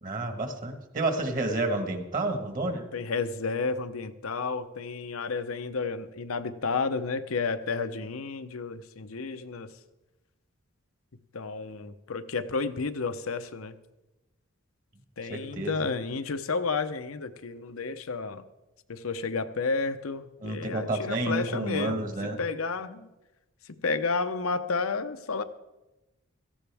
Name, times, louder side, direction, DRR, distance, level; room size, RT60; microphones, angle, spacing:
voice 1, 0.0-2.8 15.3-15.8 20.4-22.4, right 2 dB, 40° right, 6 dB, 1.5 m, -30 dB
voice 2, 2.9-9.7 11.3-13.7 15.2-18.4 18.9-22.1 22.4-23.1 23.8-25.4, left 4 dB, 85° left, 10 dB, 0.8 m, -31 dB
17.5 x 14.5 x 3.5 m, 1.0 s
head